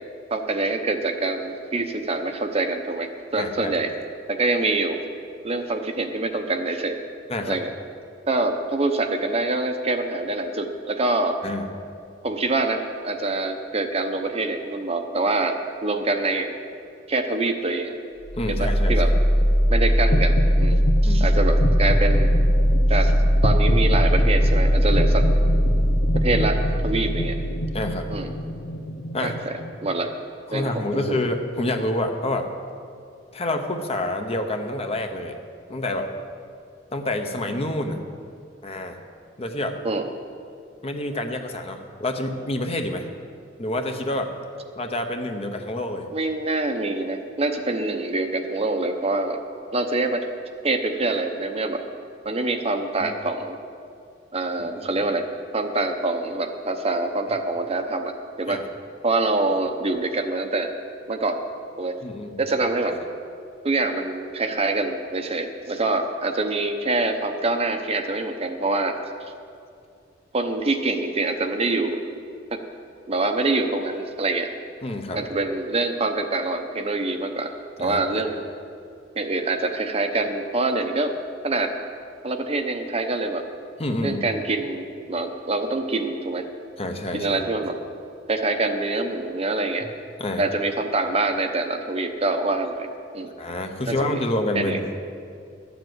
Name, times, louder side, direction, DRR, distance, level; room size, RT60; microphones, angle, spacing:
voice 1, 0.3-3.9 4.3-5.0 5.4-7.0 7.5-7.7 8.3-11.4 12.2-16.5 17.1-17.9 18.5-19.1 19.7-20.8 21.0-22.3 22.9-23.1 23.4-25.2 26.2-27.4 28.1-28.3 29.2-29.5 29.8-30.1 30.5-30.7 31.1-31.2 39.8-40.1 46.1-49.4 49.7-50.3 50.6-51.8 52.2-53.6 54.3-55.3 55.5-58.1 58.4-58.6 59.0-60.7 61.1-61.4 61.8-61.9 62.4-62.9 63.6-69.0 70.3-72.0 72.5-72.6 73.1-74.5 75.1-77.5 77.8-78.4 79.1-81.1 81.4-81.7 82.2-83.4 84.0-86.5 87.1-87.8 88.3-89.9 90.4-92.9 93.1-93.3 93.9-94.2 94.5-94.8, right 2 dB, 35° right, 6 dB, 0.8 m, -25 dB
voice 2, 3.4-3.8 7.3-7.6 11.4-11.6 18.3-18.9 21.0-21.2 27.7-28.1 29.1-29.4 30.5-32.5 33.3-35.4 35.7-36.1 36.9-38.0 38.6-39.0 39.4-39.8 40.8-43.1 43.6-44.3 44.8-46.1 53.0-53.1 54.9-55.1 58.5-58.6 62.0-62.4 74.8-75.2 77.8-78.0 83.8-84.2 86.8-87.4 90.2-90.4 93.4-94.9, left 1 dB, 35° left, 5 dB, 0.9 m, -28 dB
sound 1, 18.2-30.1, equal, 80° left, 1.0 m, -20 dB
12.5 x 7.2 x 7.9 m, 2.3 s
head